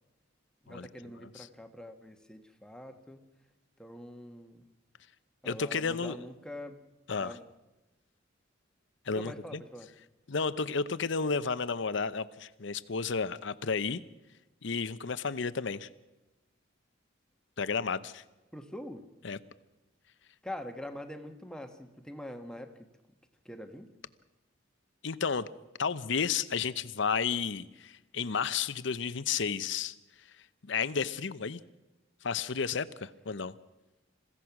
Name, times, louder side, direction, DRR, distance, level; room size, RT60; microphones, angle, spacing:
voice 1, 0.6-3.2 3.8-4.7 5.4-6.8 7.2-7.4 9.1-9.9 18.5-19.1 20.4-22.9 23.4-23.9, left 1 dB, 5° left, 6 dB, 1.4 m, -44 dB
voice 2, 5.4-6.2 7.1-7.3 9.1-9.6 10.3-14.0 14.6-15.9 17.6-18.2 19.2-19.4 25.0-25.5 25.8-30.0 30.6-31.6 32.2-33.5, left 5 dB, 65° left, 15 dB, 0.8 m, -32 dB
28.0 x 16.0 x 6.0 m, 1.0 s
head